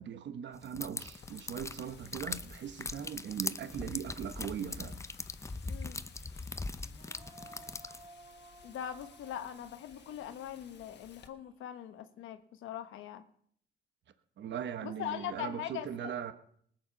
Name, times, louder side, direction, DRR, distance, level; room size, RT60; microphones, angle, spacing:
voice 1, 0.0-5.0 14.4-16.3, right 8 dB, 65° right, 1.1 m, -40 dB
sound 1, 0.6-8.1, left 3 dB, 15° left, 0.6 m, -41 dB
Wind, 1.1-11.3, left 7 dB, 60° left, 1.4 m, -57 dB
voice 2, 5.7-6.0 8.6-13.2 14.8-16.1, left 10 dB, 85° left, 1.2 m, -41 dB
Female singing, 6.8-12.0, right 2 dB, 25° right, 1.4 m, -57 dB
19.5 x 7.9 x 5.8 m
cardioid pair, 90°, 20 cm